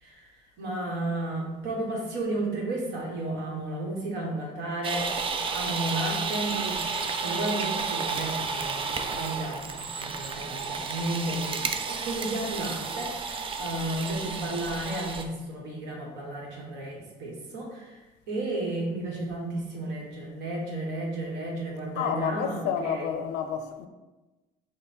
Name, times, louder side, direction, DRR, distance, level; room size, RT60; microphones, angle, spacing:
voice 1, 0.0-23.1, right 1 dB, 80° right, 1.2 m, -33 dB
sound 1, 4.8-15.2, right 5 dB, 30° right, 0.4 m, -32 dB
voice 2, 22.0-23.9, left 8 dB, 90° left, 0.4 m, -29 dB
5.4 x 2.1 x 4.2 m
cardioid pair, 110°, 17 cm